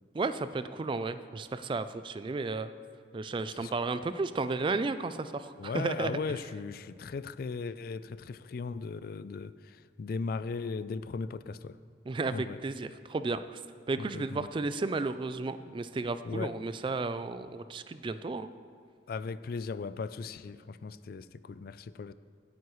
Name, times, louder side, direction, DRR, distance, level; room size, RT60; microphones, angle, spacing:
voice 1, 0.1-2.7 3.1-6.1 12.1-13.6 13.9-18.5, right 3 dB, 25° right, 12 dB, 0.3 m, -33 dB
voice 2, 5.6-11.8 12.3-12.6 14.0-14.5 16.2-16.5 19.1-22.1, left 4 dB, 55° left, 15 dB, 0.3 m, -37 dB
16.5 x 9.4 x 3.1 m, 2.3 s
head